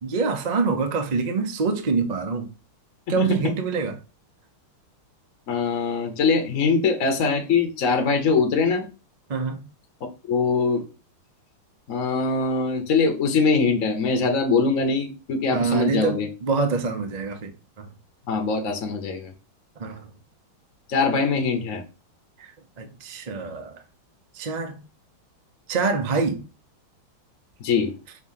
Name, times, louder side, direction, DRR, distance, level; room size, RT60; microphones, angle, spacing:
voice 1, 0.0-2.5 3.1-4.0 9.3-9.7 15.5-17.5 17.8-17.9 19.8-20.1 22.4-22.5 22.8-23.8 24.3-24.8 25.7-26.4, right 4 dB, 65° right, 0.4 m, -25 dB
voice 2, 3.1-3.4 5.5-8.8 10.3-10.8 11.9-16.3 18.3-19.3 20.9-21.8 27.6-27.9, left 4 dB, 50° left, 1.1 m, -22 dB
6.1 x 3.1 x 5.5 m
omnidirectional pair, 2.2 m